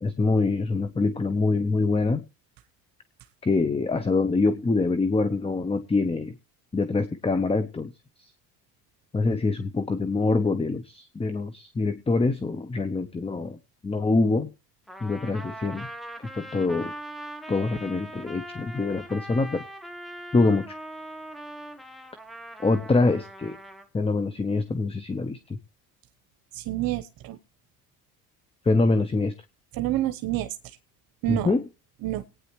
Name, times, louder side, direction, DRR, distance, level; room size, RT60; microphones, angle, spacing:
voice 1, 0.0-2.2 3.4-6.3 6.7-7.9 9.1-13.6 13.8-14.5 15.0-15.9 16.4-16.9 17.5-19.6 20.3-20.7 22.6-23.6 23.9-25.4 28.7-29.3 31.3-31.6, left 3 dB, 15° left, 11 dB, 0.9 m, -24 dB
Trumpet, 14.9-23.9, right 1 dB, ahead, 1.2 m, -41 dB
voice 2, 26.5-27.4 29.7-30.6 31.2-31.5 32.0-32.2, right 15 dB, 65° right, 10 dB, 1.1 m, -28 dB
19.5 x 9.5 x 3.1 m, 0.32 s
cardioid pair, 100°, 38 cm